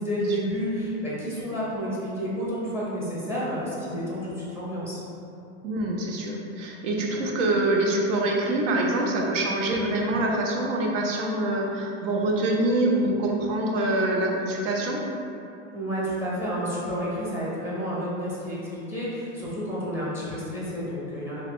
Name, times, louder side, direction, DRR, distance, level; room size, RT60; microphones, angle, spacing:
voice 1, 0.0-5.0 15.7-21.4, equal, 5° right, -8 dB, 0.7 m, -30 dB
voice 2, 5.6-15.0, right 1 dB, 70° right, -1 dB, 0.7 m, -25 dB
3.0 x 2.3 x 3.6 m, 2.7 s
supercardioid pair, 130°, 39 cm